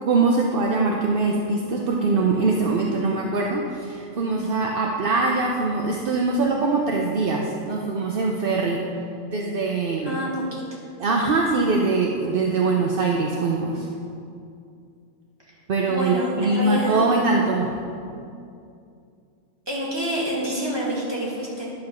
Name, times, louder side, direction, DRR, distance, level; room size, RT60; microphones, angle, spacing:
voice 1, 0.0-8.8 9.3-10.1 11.0-13.9 15.7-17.7, right 3 dB, 50° right, 0 dB, 0.7 m, -22 dB
voice 2, 10.0-10.6 15.9-17.0 19.7-21.7, right 1 dB, 15° right, -6 dB, 2.2 m, -27 dB
10.5 x 4.8 x 6.3 m, 2.5 s
omnidirectional pair, 1.6 m